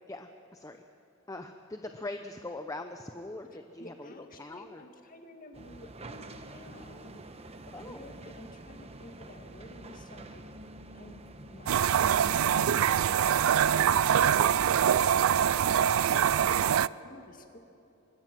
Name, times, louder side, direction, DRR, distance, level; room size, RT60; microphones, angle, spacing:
voice 1, 0.1-0.8 1.3-4.8 7.7-8.1, left 2 dB, 15° left, 6 dB, 0.7 m, -42 dB
voice 2, 3.8-10.5 10.9-11.2 11.5-17.6, left 1 dB, 40° left, 4 dB, 2.0 m, -50 dB
sound 1, 5.5-15.6, right 2 dB, 30° right, 1.0 m, -48 dB
sound 2, 11.7-16.9, right 9 dB, 85° right, 0.4 m, -24 dB
24.5 x 20.5 x 6.1 m, 2.9 s
head